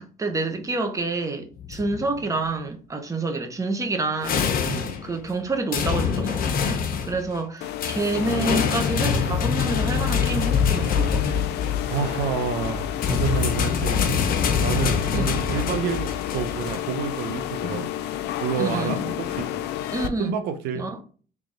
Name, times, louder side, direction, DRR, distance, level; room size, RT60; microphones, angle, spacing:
voice 1, 0.0-11.4 15.1-15.3 18.6-19.1 19.9-20.4 20.7-21.0, right 3 dB, 20° right, 0.9 m, -28 dB
sound 1, 1.6-2.6 4.2-5.3 5.7-7.4 7.8-16.8, left 7 dB, 60° left, 0.8 m, -25 dB
sound 2, 7.6-20.1, left 12 dB, 80° left, 0.5 m, -31 dB
voice 2, 11.8-14.3 14.6-17.9 18.4-19.5 20.2-21.0, right 7 dB, 85° right, 0.6 m, -29 dB
3.5 x 3.4 x 3.9 m
cardioid pair, 110°, 17 cm